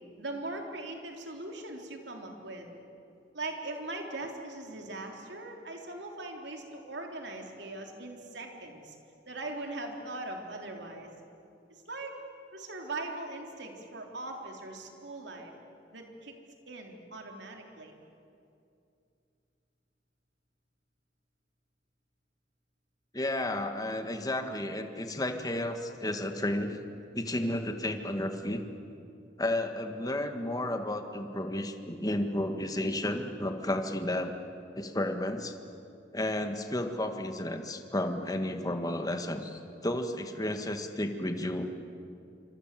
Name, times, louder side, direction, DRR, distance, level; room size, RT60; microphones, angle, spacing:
voice 1, 0.2-2.7 3.3-9.0 9.3-11.1 11.7-12.2 12.5-15.5 15.9-16.3 16.7-18.0, right 2 dB, 70° right, 2 dB, 3.6 m, -40 dB
voice 2, 23.1-26.8 27.1-28.6 29.4-34.3 34.7-35.5 36.1-41.7, left 1 dB, 20° left, 6 dB, 1.7 m, -32 dB
27.5 x 25.5 x 7.7 m, 2.6 s
head